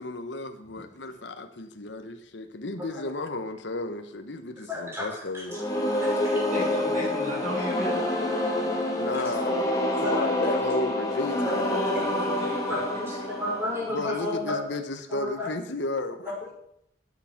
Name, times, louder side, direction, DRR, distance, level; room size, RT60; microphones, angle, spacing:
voice 1, 0.0-5.6 6.3-6.4 9.0-11.8 12.3-12.4 13.9-16.3, left 2 dB, 75° left, 1.1 m, -33 dB
voice 2, 4.7-5.0 5.3-5.4 6.0-6.1 7.8-7.9 9.1-9.2 10.0-10.5 11.4-11.6 12.7-14.7 15.1-15.5 16.3-16.5, left 2 dB, 15° right, 5.8 m, -32 dB
sound 1, 5.5-14.4, left 1 dB, 20° left, 2.5 m, -27 dB
voice 3, 6.5-8.0 11.7-13.2, equal, 40° right, 5.2 m, -37 dB
12.5 x 9.7 x 5.9 m
head